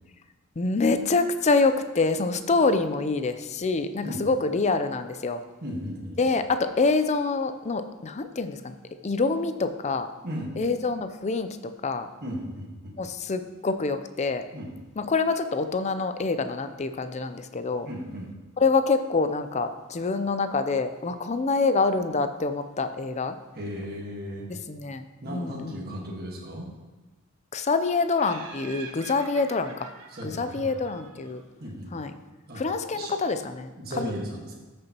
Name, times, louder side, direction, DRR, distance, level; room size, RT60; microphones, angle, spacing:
voice 1, 0.6-5.4 6.2-8.7 9.0-10.1 10.6-11.6 11.8-12.1 12.9-14.4 15.0-17.9 18.6-23.4 24.7-25.0 25.3-25.8 27.5-29.9 30.2-31.4 31.9-32.1 32.5-33.7 34.0-34.1, left 3 dB, 30° left, 9 dB, 0.5 m, -26 dB
voice 2, 5.6-6.2 10.2-10.5 12.2-12.9 14.5-14.7 17.8-18.3 23.5-24.5 25.2-26.7 30.1-30.7 31.6-31.9 32.5-32.6 32.9-33.1 33.8-34.5, equal, 45° right, -3 dB, 1.5 m, -35 dB
Laughter, 28.2-31.5, right 4 dB, 80° right, 1.2 m, -45 dB
13.5 x 6.8 x 2.9 m, 1.1 s
head